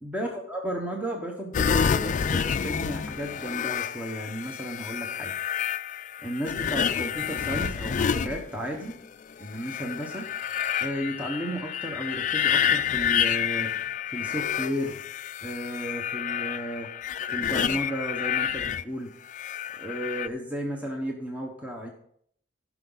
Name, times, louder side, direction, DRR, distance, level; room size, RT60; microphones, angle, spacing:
voice 1, 0.0-5.3 6.2-9.0 9.4-10.3 10.8-13.7 14.1-15.0 15.4-16.9 17.3-19.1 19.8-21.9, equal, 10° right, 1 dB, 1.0 m, -34 dB
sound 1, 1.5-8.9 9.5-18.8 19.3-20.3, left 8 dB, 40° left, 0.3 m, -29 dB
15.0 x 6.0 x 4.0 m, 0.67 s
head